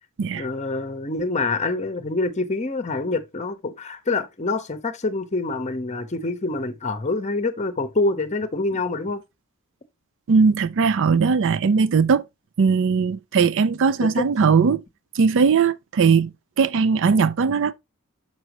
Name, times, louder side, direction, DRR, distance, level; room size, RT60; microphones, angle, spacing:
voice 1, 0.3-9.2 14.0-14.2, left 3 dB, 30° left, 0.7 m, -26 dB
voice 2, 10.3-12.2 12.6-14.8 15.2-16.3 16.6-17.7, right 5 dB, 60° right, 0.4 m, -19 dB
6.1 x 5.5 x 2.9 m
head